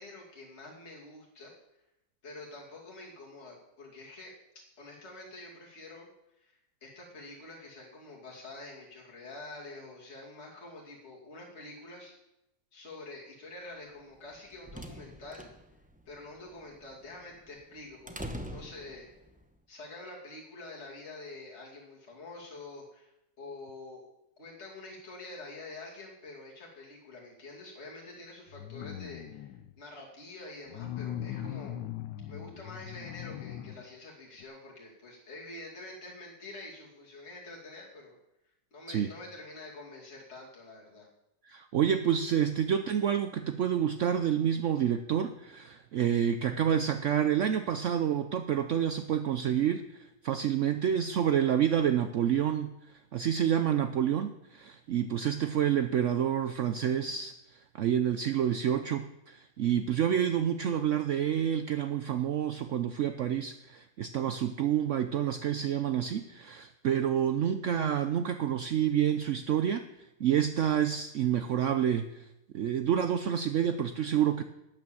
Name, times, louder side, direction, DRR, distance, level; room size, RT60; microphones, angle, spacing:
voice 1, 0.0-1.5 2.2-4.3 4.8-6.1 6.4-12.1 12.7-15.5 16.1-19.1 19.7-23.1 23.4-24.0 24.4-31.8 32.3-38.2 38.7-41.1, left 2 dB, 35° left, -4 dB, 2.8 m, -47 dB
sound 1, 14.2-19.4, equal, 10° right, 0.5 m, -45 dB
sound 2, 28.5-29.7 30.7-33.9 34.4-34.5, left 11 dB, 80° left, 1.3 m, -40 dB
voice 2, 41.4-52.7 53.1-57.3 57.7-69.8 70.2-72.3 72.5-74.4, right 9 dB, 70° right, 10 dB, 0.7 m, -28 dB
12.5 x 8.8 x 7.1 m, 0.88 s
omnidirectional pair, 2.0 m